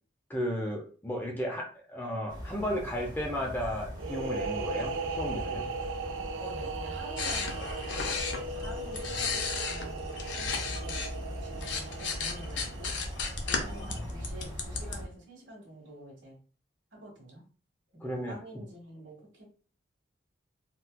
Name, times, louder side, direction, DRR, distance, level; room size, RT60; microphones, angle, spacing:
voice 1, 0.3-5.7 8.6-8.7 13.6-14.1 18.0-18.4, equal, 10° left, -1 dB, 0.6 m, -34 dB
sound 1, 2.3-15.0, equal, 20° right, 0.9 m, -41 dB
sound 2, 4.0-13.5, right 4 dB, 90° right, 0.4 m, -38 dB
voice 2, 6.4-8.1 8.4-12.9 13.4-16.4 16.9-17.4 17.9-19.5, right 1 dB, 75° right, 0 dB, 1.3 m, -48 dB
sound 3, 7.2-11.1 11.4-15.0, left 5 dB, 70° left, 0.6 m, -35 dB
4.1 x 2.2 x 2.2 m, 0.38 s
head